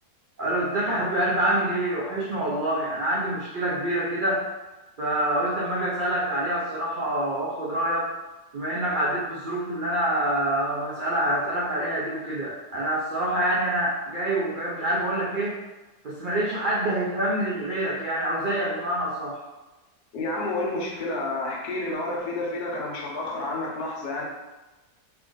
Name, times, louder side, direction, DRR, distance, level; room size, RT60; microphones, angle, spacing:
voice 1, 0.4-4.5 5.0-8.1 8.5-15.6 16.0-19.4, right 1 dB, 90° right, -6 dB, 0.4 m, -26 dB
voice 2, 20.1-24.2, left 2 dB, 75° left, -2 dB, 1.3 m, -30 dB
3.3 x 2.5 x 3.7 m, 1.1 s
omnidirectional pair, 1.7 m